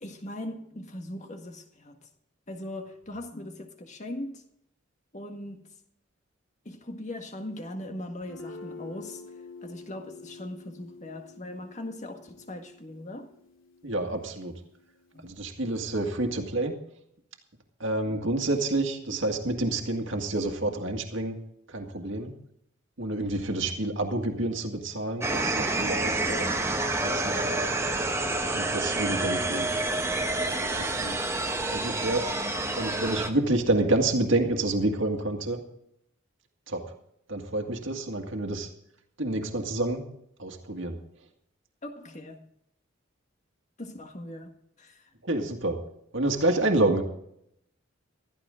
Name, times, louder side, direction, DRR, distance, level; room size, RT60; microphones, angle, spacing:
voice 1, 0.0-2.1 2.5-4.4 5.1-5.7 6.7-9.2 9.6-13.3 15.1-15.2 41.8-42.4 43.8-45.1, left 1 dB, 35° left, 1.7 m, -40 dB
Guitar, 8.2-15.9, left 3 dB, 80° left, 2.5 m, -48 dB
voice 2, 13.8-14.5 15.2-16.7 17.8-21.4 21.7-22.3 23.0-26.5 27.0-27.7 28.5-29.8 30.6-31.2 31.7-32.3 32.7-35.6 36.7-36.9 37.3-38.7 39.2-40.0 40.4-41.0 45.2-45.8 46.1-47.0, right 2 dB, 70° right, 2.0 m, -28 dB
Kitsch Theme, 25.2-33.3, right 2 dB, 15° right, 1.0 m, -28 dB
15.5 x 14.0 x 3.8 m
head